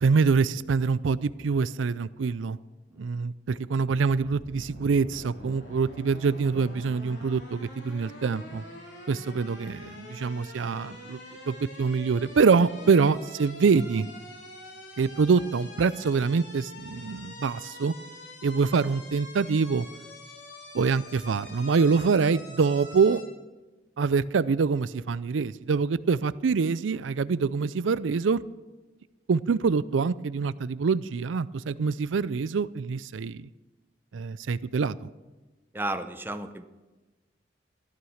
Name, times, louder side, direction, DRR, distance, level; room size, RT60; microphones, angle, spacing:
voice 1, 0.0-2.6 3.0-8.6 9.1-11.2 11.5-14.1 15.0-17.9 18.4-19.9 20.7-23.2 24.0-28.4 29.3-33.5 34.1-35.1, right 5 dB, 90° right, 17 dB, 0.4 m, -25 dB
sound 1, 4.1-23.2, left 1 dB, 65° left, 3.5 m, -45 dB
voice 2, 35.7-36.6, right 1 dB, 10° right, 9 dB, 0.7 m, -33 dB
14.0 x 12.5 x 6.4 m, 1.2 s
head